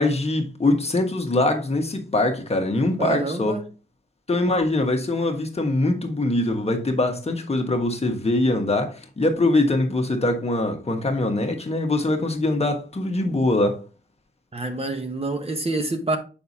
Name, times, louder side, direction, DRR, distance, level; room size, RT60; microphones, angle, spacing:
voice 1, 0.0-3.5 4.3-13.8, left 2 dB, 30° left, 1.3 m, -23 dB
voice 2, 3.0-3.7 14.5-16.2, right 3 dB, 30° right, 0.9 m, -26 dB
6.7 x 5.3 x 2.8 m
wide cardioid pair, 115°, 21 cm